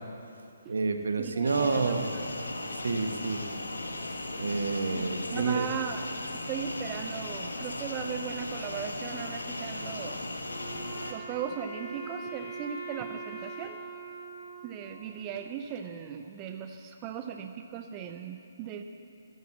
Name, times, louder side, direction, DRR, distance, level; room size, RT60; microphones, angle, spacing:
voice 1, 0.7-2.1 2.8-3.4 4.4-5.7, right 4 dB, 70° right, 7 dB, 1.2 m, -29 dB
voice 2, 1.2-2.2 4.9-10.3 11.1-13.8 14.6-18.8, right 8 dB, 25° right, 6 dB, 0.6 m, -38 dB
sound 1, 1.4-11.1, left 2 dB, 85° left, 1.3 m, -37 dB
Wind instrument woodwind instrument, 10.5-15.6, right 4 dB, ahead, 2.4 m, -43 dB
11.0 x 10.5 x 7.1 m, 2.6 s
figure-of-eight pair, 140°, 0 cm